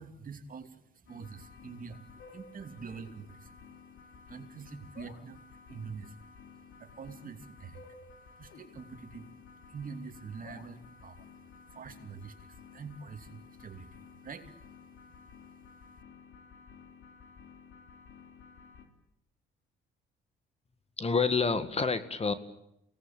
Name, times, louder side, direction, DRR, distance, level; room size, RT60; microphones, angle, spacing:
voice 1, 0.0-3.6 4.2-8.0 8.4-11.3 11.6-14.6, right 5 dB, 45° right, 7 dB, 2.7 m, -46 dB
sound 1, 1.1-18.9, left 5 dB, 75° left, 3.7 m, -53 dB
voice 2, 21.0-22.3, left 4 dB, 30° left, 12 dB, 1.8 m, -28 dB
25.0 x 18.5 x 8.9 m, 0.81 s
cardioid pair, 90°, 20 cm